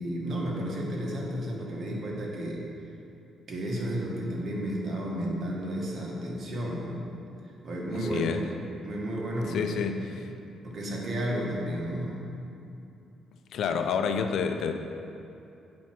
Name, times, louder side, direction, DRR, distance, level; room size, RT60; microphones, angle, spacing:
voice 1, 0.0-2.6 3.5-7.0 7.6-8.3 8.8-9.9 10.6-12.3, equal, 50° right, -3 dB, 1.7 m, -32 dB
voice 2, 7.9-8.5 9.5-10.3 13.5-14.7, left 6 dB, 70° left, 7 dB, 0.5 m, -29 dB
8.5 x 4.4 x 5.9 m, 2.7 s
cardioid pair, 90°, 0 cm